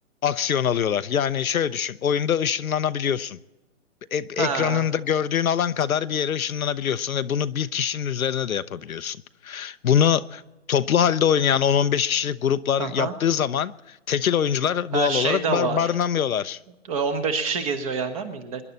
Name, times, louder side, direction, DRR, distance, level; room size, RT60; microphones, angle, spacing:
voice 1, 0.2-3.4 4.1-9.2 9.4-10.4 10.7-16.6, left 8 dB, 80° left, 0.8 m, -23 dB
voice 2, 4.4-4.9 12.8-13.1 14.9-15.9 16.9-18.6, right 5 dB, 25° right, 1.3 m, -26 dB
24.5 x 11.0 x 4.2 m
hypercardioid pair, 155°, 41 cm